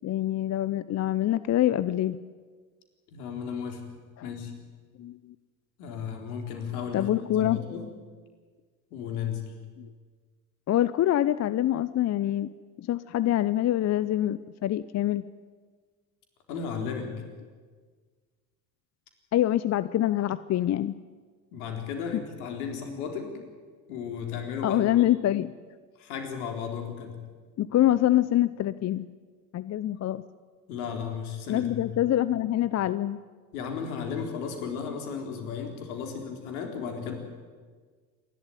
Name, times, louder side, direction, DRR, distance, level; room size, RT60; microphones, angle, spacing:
voice 1, 0.0-2.2 4.2-4.3 5.0-5.2 6.9-7.8 9.8-9.9 10.7-12.5 12.8-15.3 19.3-20.9 24.6-25.5 27.6-29.1 29.5-30.2 31.5-33.2, left 13 dB, 35° left, 16 dB, 0.7 m, -25 dB
voice 2, 3.1-3.8 4.2-4.5 5.8-7.9 8.9-9.4 16.5-17.1 21.5-23.3 23.9-25.1 26.0-27.2 30.7-32.0 33.5-37.1, left 6 dB, 70° left, 4 dB, 4.0 m, -34 dB
27.5 x 12.0 x 9.7 m, 1.5 s
hypercardioid pair, 65°, 45 cm